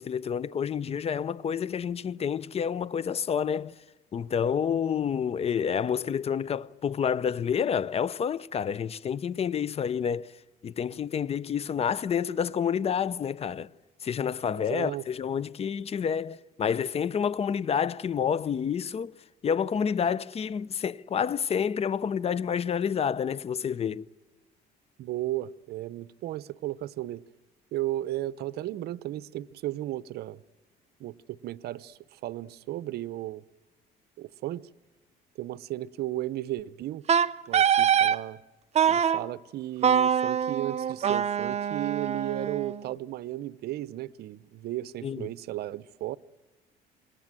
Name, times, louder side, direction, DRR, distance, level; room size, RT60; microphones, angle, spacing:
voice 1, 0.0-3.7 4.1-10.3 10.6-13.7 14.0-19.1 19.4-24.1 45.0-45.3, left 7 dB, 35° left, 0.7 m, -29 dB
voice 2, 14.5-15.1 25.0-27.2 27.7-30.4 31.0-33.4 34.2-34.7 35.4-37.0 37.5-38.4 38.8-46.2, right 15 dB, 70° right, 0.8 m, -34 dB
Wind instrument woodwind instrument, 37.1-38.2 38.8-39.2 39.8-42.8, right 8 dB, 40° right, 0.7 m, -24 dB
28.0 x 20.5 x 7.6 m
cardioid pair, 110°, 17 cm